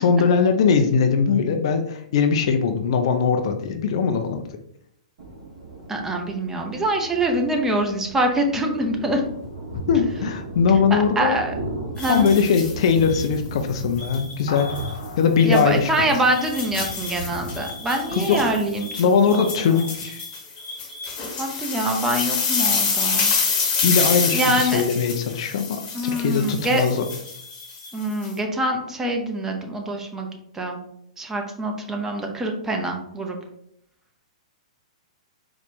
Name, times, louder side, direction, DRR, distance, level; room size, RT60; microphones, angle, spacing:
voice 1, 0.0-4.4 9.7-11.4 12.1-14.7 15.2-16.2 18.1-18.5 19.0-20.2 23.8-27.0, left 6 dB, 50° left, 6 dB, 0.4 m, -20 dB
Thunder, 5.2-20.0, right 1 dB, 55° right, 1.3 m, -36 dB
voice 2, 5.9-9.3 10.9-11.5 12.0-12.3 15.4-18.9 19.3-19.8 21.4-23.4 24.3-24.8 25.9-26.8 27.9-30.3 30.5-30.8 31.2-33.4, right 1 dB, 10° right, 2 dB, 0.6 m, -24 dB
sound 1, 12.0-13.3 14.0-14.9 15.4-15.6 16.1-28.3, left 5 dB, 30° left, 1.0 m, -27 dB
sound 2, 14.5-17.2, left 3 dB, 70° left, 1.1 m, -39 dB
4.0 x 2.4 x 3.6 m, 0.72 s
figure-of-eight pair, 110°, 4 cm